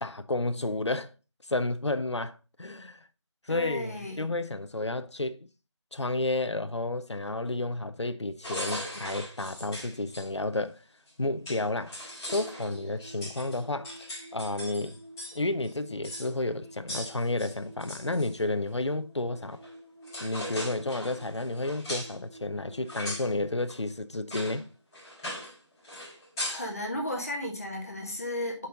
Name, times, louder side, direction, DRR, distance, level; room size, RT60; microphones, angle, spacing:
voice 1, 0.0-1.1 1.5-3.1 3.4-5.5 5.9-10.8 11.2-15.0 15.3-19.6 20.2-24.7, left 2 dB, 70° left, 0.8 m, -31 dB
voice 2, 3.5-4.2 26.5-28.7, left 1 dB, 30° left, 1.5 m, -34 dB
sound 1, 8.4-10.3 11.1-11.2 11.4-15.4 15.6-15.7 16.0-16.3 16.9-18.3 19.6-19.7 20.0-22.2 22.9-23.3 23.7-23.8 24.3-24.6 24.9-25.6 25.8-26.7, left 1 dB, 5° left, 1.6 m, -39 dB
sound 2, 12.3-24.8, equal, 70° right, 3.1 m, -50 dB
7.5 x 5.7 x 3.8 m
figure-of-eight pair, 165°, 15 cm